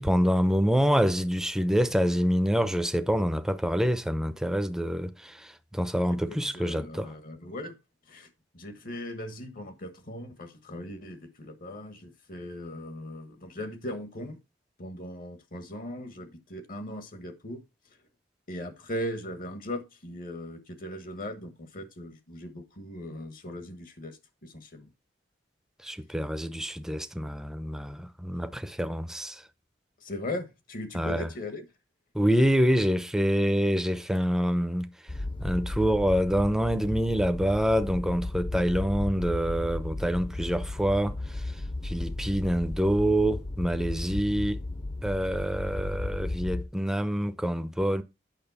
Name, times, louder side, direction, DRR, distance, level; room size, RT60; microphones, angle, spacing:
voice 1, 0.0-7.1 25.8-29.4 30.9-31.3 32.1-34.9 35.4-41.5 41.8-44.6 45.0-48.0, equal, 5° right, 0.7 m, -26 dB
voice 2, 6.3-7.8 8.1-8.3 8.5-14.4 14.8-17.6 18.5-24.9 30.0-31.7, left 1 dB, 50° left, 1.4 m, -39 dB
sound 1, 35.1-46.6, left 2 dB, 30° left, 0.8 m, -35 dB
9.0 x 6.2 x 4.1 m
head